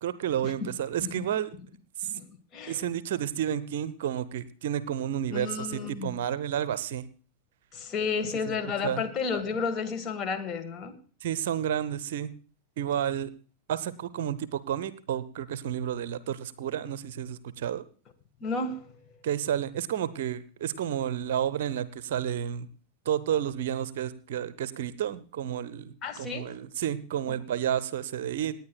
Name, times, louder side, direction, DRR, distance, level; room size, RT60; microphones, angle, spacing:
voice 1, 0.0-1.5 2.0-2.1 2.7-7.0 8.5-8.6 8.8-9.0 11.2-12.3 12.8-13.3 13.7-17.8 19.2-22.7 23.1-28.5, right 10 dB, 55° right, 16 dB, 0.7 m, -31 dB
voice 2, 5.3-6.1 7.7-11.0 18.4-18.9 26.0-26.6 27.3-27.4, left 5 dB, 30° left, 7 dB, 1.7 m, -32 dB
27.0 x 9.5 x 2.3 m, 0.40 s
figure-of-eight pair, 90°, 0 cm